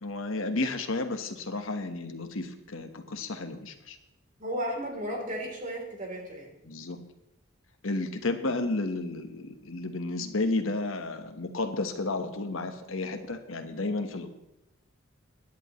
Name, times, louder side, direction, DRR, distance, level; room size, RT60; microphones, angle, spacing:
voice 1, 0.0-4.0 6.6-7.0 7.8-14.3, left 2 dB, 75° left, 6 dB, 1.3 m, -32 dB
voice 2, 4.4-6.5, equal, 40° right, 0 dB, 3.4 m, -34 dB
22.0 x 10.5 x 3.1 m, 0.87 s
head